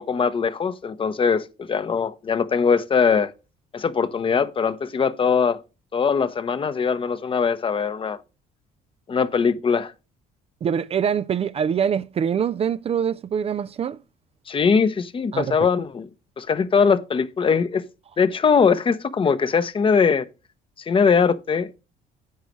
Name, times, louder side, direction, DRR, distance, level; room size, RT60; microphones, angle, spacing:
voice 1, 0.0-3.3 3.7-5.6 5.9-8.2 9.1-9.9 14.5-16.1 16.4-17.8 18.2-20.3 20.9-21.8, left 6 dB, 30° left, 0.8 m, -21 dB
voice 2, 10.6-14.0 15.3-15.6, right 8 dB, 35° right, 0.4 m, -24 dB
10.5 x 8.1 x 3.1 m
cardioid pair, 110°, 17 cm